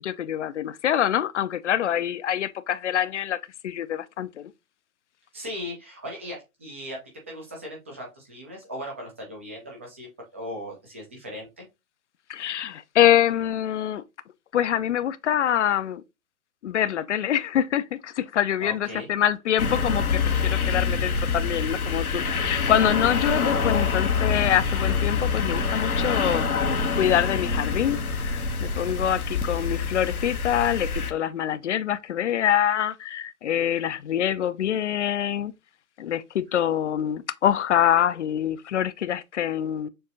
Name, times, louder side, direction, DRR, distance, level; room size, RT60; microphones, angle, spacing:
voice 1, 0.0-4.5 12.3-14.0 14.5-16.0 16.6-35.5 36.0-39.9, left 10 dB, 55° left, 0.5 m, -25 dB
voice 2, 5.3-10.1 10.3-11.6 18.6-19.1, equal, 10° right, 0.4 m, -38 dB
sound 1, 19.6-31.1, left 5 dB, 85° left, 0.8 m, -26 dB
6.5 x 2.6 x 2.6 m
figure-of-eight pair, 130°, 43 cm